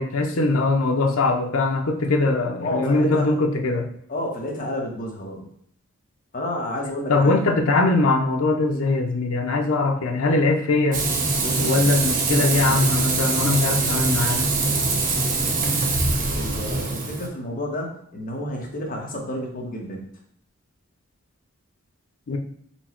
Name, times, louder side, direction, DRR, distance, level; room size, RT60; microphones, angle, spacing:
voice 1, 0.0-3.9 7.1-11.0 11.6-14.5 22.3-22.4, left 3 dB, 75° left, 3 dB, 0.5 m, -21 dB
voice 2, 2.6-3.4 4.1-5.5 6.3-7.4 11.4-11.9 12.3-13.1 13.4-13.6 14.6-20.1, left 1 dB, 40° left, -1 dB, 0.9 m, -31 dB
Frying (food), 10.9-17.3, right 3 dB, 40° right, 0.6 m, -23 dB
4.4 x 2.1 x 4.3 m, 0.68 s
head